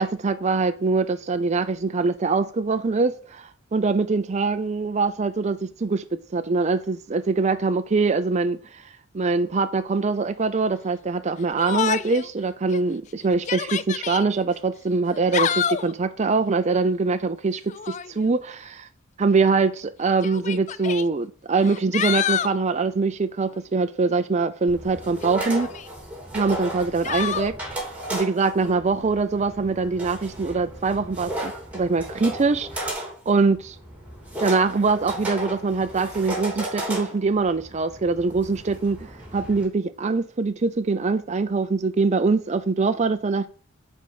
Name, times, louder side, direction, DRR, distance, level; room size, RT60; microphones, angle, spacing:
voice 1, 0.0-8.8 9.1-17.6 17.9-18.9 19.2-25.7 26.3-27.5 28.1-33.8 34.4-43.5, right 4 dB, 35° right, 0.5 m, -23 dB
Yell, 11.6-12.3 12.7-12.8 13.3-14.2 15.1-15.9 17.7-18.1 19.3-19.4 20.2-21.0 21.6-22.6 25.2-25.9 27.0-27.5, left 8 dB, 35° left, 0.4 m, -27 dB
sound 1, 24.7-39.6, right 1 dB, 5° right, 2.8 m, -34 dB
7.4 x 4.5 x 7.0 m
head